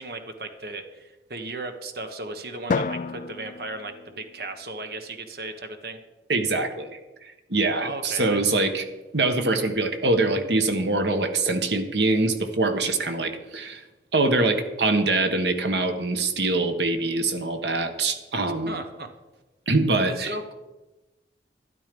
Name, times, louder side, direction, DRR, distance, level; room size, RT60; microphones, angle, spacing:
voice 1, 0.0-6.0 7.8-8.5 18.7-19.1 20.0-20.5, right 2 dB, 55° right, 7 dB, 1.2 m, -36 dB
Drum, 2.7-5.0, left 4 dB, 45° left, 0.3 m, -31 dB
voice 2, 6.3-7.0 7.5-8.8 9.1-13.8 14.1-18.8 19.7-20.3, right 2 dB, 75° right, 7 dB, 1.4 m, -24 dB
12.5 x 11.5 x 5.3 m, 1.1 s
head